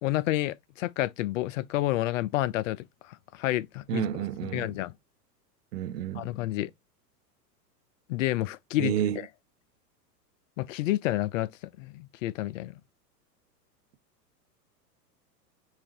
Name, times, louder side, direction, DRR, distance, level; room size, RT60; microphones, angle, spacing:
voice 1, 0.0-4.9 6.1-6.7 8.1-9.3 10.6-11.5 11.8-12.7, left 15 dB, 50° left, 0.5 m, -30 dB
voice 2, 3.9-4.8 5.7-6.3 8.8-9.2, right 10 dB, 75° right, 0.6 m, -30 dB
5.6 x 2.5 x 2.8 m
hypercardioid pair, 100°, 49 cm